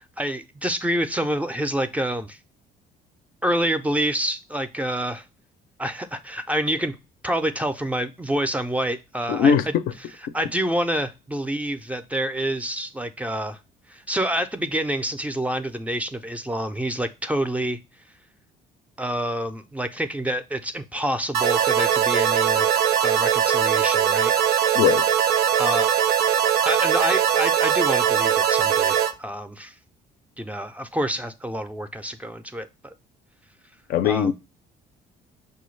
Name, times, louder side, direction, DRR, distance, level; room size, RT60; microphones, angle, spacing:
voice 1, 0.0-2.4 3.4-5.2 5.8-7.0 7.2-9.7 10.3-13.6 13.9-17.8 19.0-22.7 23.0-24.3 25.6-25.9 26.6-29.7 30.4-32.9 34.0-34.3, right 1 dB, 10° right, 0.3 m, -27 dB
voice 2, 9.3-9.8 24.7-25.0 33.9-34.3, left 8 dB, 65° left, 0.4 m, -19 dB
sound 1, 21.3-29.1, right 9 dB, 75° right, 0.5 m, -20 dB
5.6 x 2.2 x 3.1 m
cardioid pair, 115°, 16 cm